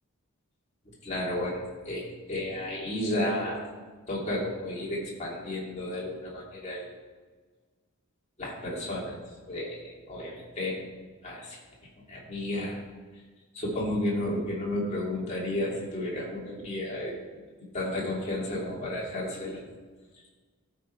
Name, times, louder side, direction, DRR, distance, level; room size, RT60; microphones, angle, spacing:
voice 1, 1.0-3.7 4.1-6.9 8.4-9.2 9.4-10.7 11.2-11.6 12.1-12.8 13.5-17.1 17.7-19.6, left 1 dB, 35° left, -4 dB, 2.4 m, -32 dB
14.5 x 5.1 x 4.4 m, 1.4 s
head